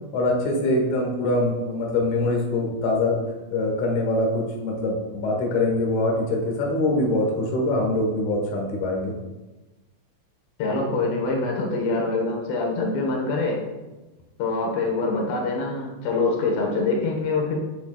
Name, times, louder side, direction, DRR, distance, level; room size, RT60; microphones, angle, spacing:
voice 1, 0.1-3.2 3.5-9.1, left 2 dB, 60° left, 0 dB, 2.4 m, -23 dB
voice 2, 10.6-13.6 14.4-17.5, left 3 dB, 80° left, 0 dB, 3.5 m, -24 dB
10.0 x 7.5 x 2.4 m, 1.1 s
omnidirectional pair, 4.8 m